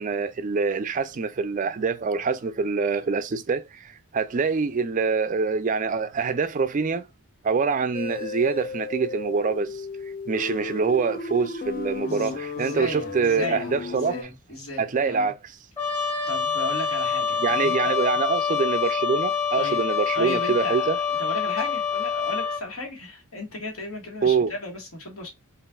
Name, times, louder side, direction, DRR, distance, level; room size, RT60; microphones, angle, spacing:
voice 1, 0.0-7.1 7.4-9.8 10.3-14.2 14.8-15.4 17.4-21.0 24.2-24.5, right 5 dB, 35° right, 0.3 m, -25 dB
sound 1, 7.9-14.2, left 4 dB, 40° left, 0.4 m, -34 dB
voice 2, 12.0-15.3 16.3-18.0 19.6-25.3, left 2 dB, 65° left, 1.6 m, -35 dB
Trumpet, 15.8-22.6, left 7 dB, 10° left, 1.2 m, -26 dB
5.2 x 2.5 x 2.3 m
head